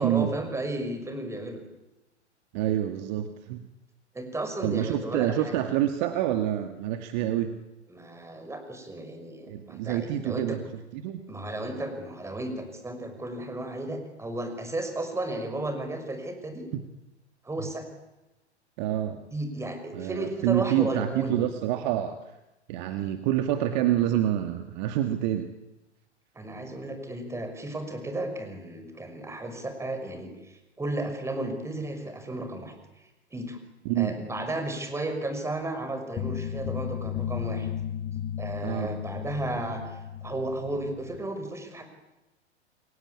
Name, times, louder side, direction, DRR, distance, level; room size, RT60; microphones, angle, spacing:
voice 1, 0.0-1.6 4.1-5.6 7.9-10.6 11.3-16.7 17.4-17.9 19.3-21.4 26.3-32.7 33.3-33.6 34.0-37.7 38.4-41.8, right 2 dB, 10° right, 6 dB, 6.0 m, -34 dB
voice 2, 2.5-3.7 4.6-7.6 9.5-10.6 10.9-11.2 16.7-16.8 18.8-19.2 19.9-22.2 22.7-25.5 33.9-34.1 38.6-38.9, right 12 dB, 40° right, 8 dB, 2.0 m, -27 dB
sound 1, 36.2-41.2, left 9 dB, 20° left, 1.6 m, -34 dB
29.5 x 22.5 x 8.6 m, 1.0 s
figure-of-eight pair, 105°, 34 cm